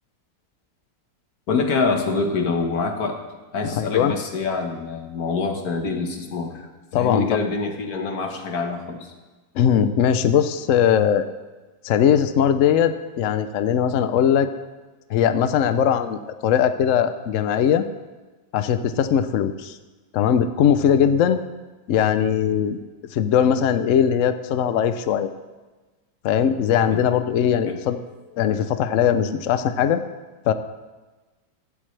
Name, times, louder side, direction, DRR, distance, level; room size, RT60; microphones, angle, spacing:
voice 1, 1.5-3.2 3.5-6.7 6.9-9.1 26.9-27.0 27.7-27.8, left 4 dB, 55° left, 3 dB, 1.7 m, -25 dB
voice 2, 3.8-4.1 6.9-7.4 9.6-11.3 11.8-14.5 15.1-17.8 18.5-19.8 20.1-21.4 21.9-22.8 23.1-25.3 26.2-28.0 28.4-30.0 30.5-30.6, left 8 dB, 80° left, 11 dB, 0.7 m, -20 dB
15.0 x 12.0 x 3.3 m, 1.2 s
omnidirectional pair, 2.1 m